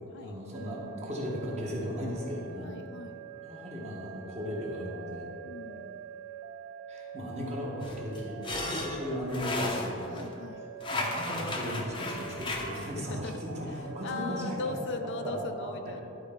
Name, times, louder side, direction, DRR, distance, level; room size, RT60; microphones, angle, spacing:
voice 1, 0.2-2.7 3.4-5.3 6.9-10.2 10.6-14.7 15.0-16.0, equal, 30° right, -3 dB, 1.3 m, -36 dB
sound 1, 0.5-15.5, right 7 dB, 65° right, 0.3 m, -45 dB
voice 2, 2.6-3.2 5.4-6.0 8.7-8.8 10.1-10.7 13.0-13.4 14.0-16.0, left 4 dB, 55° left, 6 dB, 0.5 m, -38 dB
sound 2, 7.8-10.3 10.8-12.9, left 2 dB, 25° left, 0.7 m, -35 dB
11.0 x 4.4 x 3.7 m, 2.8 s
head